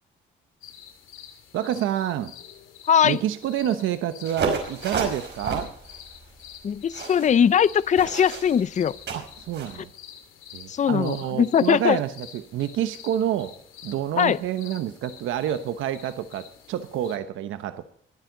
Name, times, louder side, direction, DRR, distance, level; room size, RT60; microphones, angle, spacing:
sound 1, 0.6-17.2, left 9 dB, 90° left, 2.5 m, -47 dB
voice 1, 1.5-2.3 3.0-5.7 9.1-9.9 10.5-13.5 13.8-17.9, right 11 dB, 85° right, 1.0 m, -28 dB
voice 2, 2.9-3.2 6.6-8.9 10.7-12.0 14.2-14.4, left 8 dB, 40° left, 0.6 m, -20 dB
sound 2, 4.3-9.7, right 4 dB, 60° right, 5.4 m, -32 dB
21.5 x 11.0 x 3.9 m
cardioid pair, 90°, 20 cm